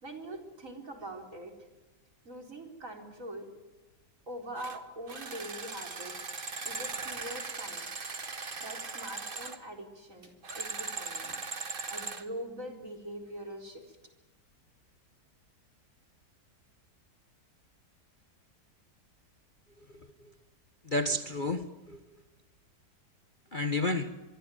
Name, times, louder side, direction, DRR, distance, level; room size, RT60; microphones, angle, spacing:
voice 1, 0.0-1.5 2.2-3.5 4.3-6.1 6.6-7.9 8.6-11.4 11.9-14.0, right 1 dB, 45° right, 4 dB, 4.6 m, -43 dB
sound 1, 4.6-4.8 5.1-9.6 10.4-12.3, right 4 dB, 30° right, 1.7 m, -39 dB
voice 2, 19.9-20.3 20.8-22.0 23.5-24.1, left 2 dB, 30° left, 8 dB, 1.3 m, -31 dB
25.5 x 22.5 x 9.3 m, 1.1 s
omnidirectional pair, 1.9 m